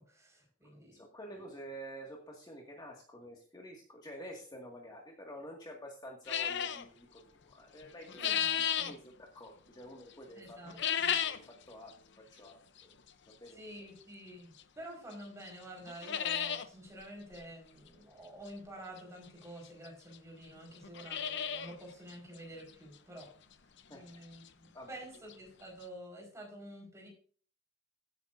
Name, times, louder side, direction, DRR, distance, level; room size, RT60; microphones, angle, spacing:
voice 1, 0.0-1.1 1.3-1.5 8.1-8.9 10.3-11.2 13.5-23.3 23.9-27.1, right 1 dB, 15° right, -1 dB, 4.9 m, -49 dB
voice 2, 0.9-8.3 8.9-9.0 9.3-10.6 11.1-11.4 11.7-11.9 12.3-12.9 13.3-13.6 23.9-24.2 24.7-24.9, equal, 20° left, -1 dB, 2.0 m, -49 dB
sound 1, 6.3-6.8 7.8-8.9 10.7-11.5 11.9-12.0 12.8-12.9 14.6-14.7 15.1-15.2 15.5-15.6 15.9-16.7 17.0-17.1 17.3-17.4 19.0-19.1 19.8-19.9 20.1-20.2 20.7-21.8 22.1-22.2 22.7-22.8 23.2-23.3 25.0-25.1 25.3-25.4 25.8-25.9, left 9 dB, 60° left, 0.8 m, -33 dB
16.5 x 9.5 x 2.6 m, 0.42 s
head